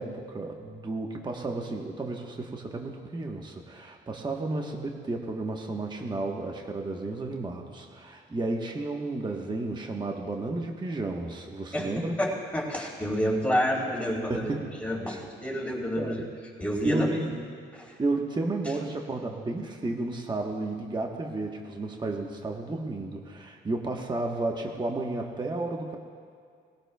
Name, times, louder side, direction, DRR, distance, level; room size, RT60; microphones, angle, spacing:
voice 1, 0.0-12.2 14.3-15.2 16.0-16.3 16.8-17.4 18.0-26.0, right 2 dB, 20° right, 1 dB, 1.2 m, -32 dB
voice 2, 11.7-14.5 14.8-16.2 16.6-17.3 17.7-18.0, equal, 5° left, -3 dB, 3.4 m, -29 dB
20.5 x 16.0 x 2.3 m, 2.2 s
cardioid pair, 90°, 20 cm